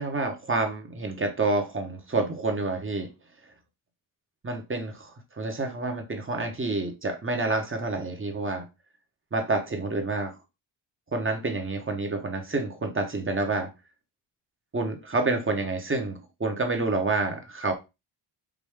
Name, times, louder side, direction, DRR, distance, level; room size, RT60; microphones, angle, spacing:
voice 1, 0.0-3.1 4.4-8.7 9.3-10.3 11.1-13.7 14.7-17.7, right 3 dB, 25° right, 1.1 m, -28 dB
5.0 x 2.7 x 3.5 m
cardioid pair, 80°, 46 cm